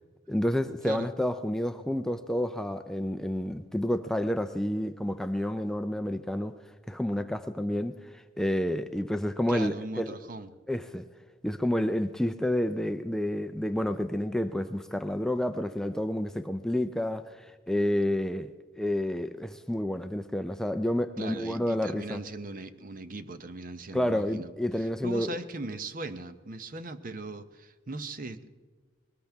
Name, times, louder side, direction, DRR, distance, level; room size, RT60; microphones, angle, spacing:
voice 1, 0.3-6.5 6.9-10.1 10.7-11.0 11.4-18.5 18.8-22.2 23.9-25.4, left 1 dB, 5° left, 8 dB, 0.4 m, -29 dB
voice 2, 9.5-10.6 21.2-24.5 24.8-28.5, right 2 dB, 45° right, 11 dB, 0.7 m, -39 dB
21.0 x 19.0 x 3.5 m, 1.4 s
head